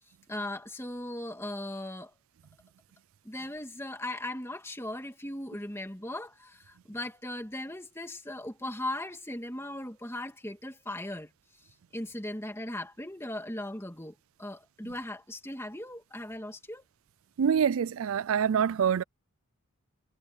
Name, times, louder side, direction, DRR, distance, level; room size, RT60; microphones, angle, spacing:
voice 1, 0.3-2.1 3.2-11.3 11.9-16.8, left 1 dB, 10° left, 2.2 m, -38 dB
voice 2, 17.4-19.0, right 7 dB, 70° right, 0.4 m, -26 dB
head